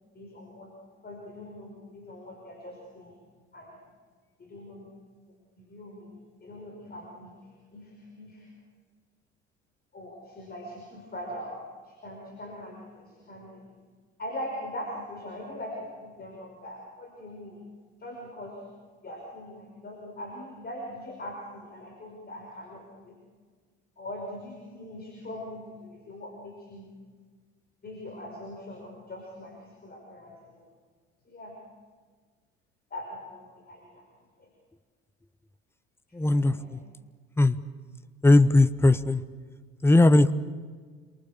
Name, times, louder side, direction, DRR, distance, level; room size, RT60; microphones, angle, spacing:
voice 1, 0.1-0.7 1.0-3.2 3.5-3.8 4.4-4.9 5.6-6.1 6.4-7.3 7.7-8.5 9.9-11.6 11.8-13.7 14.2-17.6 18.0-18.6 19.0-23.2 24.0-26.9 27.8-30.7 31.3-31.6 32.9-34.1 34.4-34.5 36.1-36.8, left 1 dB, 25° left, 0 dB, 5.5 m, -41 dB
voice 2, 36.2-36.5 37.4-37.6 38.2-39.2 39.8-40.3, left 2 dB, 5° left, 13 dB, 0.9 m, -18 dB
27.0 x 23.0 x 7.0 m, 1.6 s
figure-of-eight pair, 60°, 35 cm